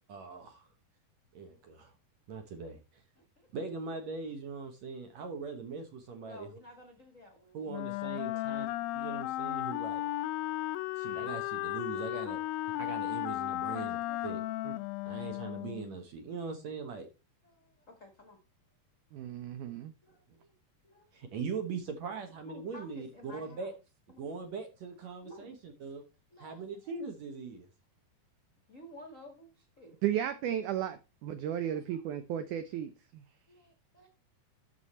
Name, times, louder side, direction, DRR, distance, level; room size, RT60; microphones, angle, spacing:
voice 1, 0.1-0.7 1.3-1.9 2.3-3.0 3.5-6.5 7.5-8.7 8.9-10.0 11.0-12.4 12.7-14.4 15.1-17.1 21.1-23.7 24.2-26.0 26.4-27.7, right 4 dB, 65° right, 1.9 m, -41 dB
voice 2, 3.2-3.5 6.2-7.6 7.9-8.6 13.1-13.2 13.6-14.5 17.4-18.4 20.0-20.5 20.8-21.2 22.4-23.7 24.1-24.2 25.2-25.5 26.3-27.0 28.7-30.0 31.6-32.0 33.5-34.1, left 1 dB, 55° left, 0.8 m, -54 dB
Wind instrument woodwind instrument, 7.7-15.9, left 16 dB, 80° left, 2.2 m, -35 dB
voice 3, 19.1-19.9 30.0-33.2, right 10 dB, 80° right, 1.8 m, -35 dB
12.5 x 4.9 x 4.2 m
omnidirectional pair, 4.4 m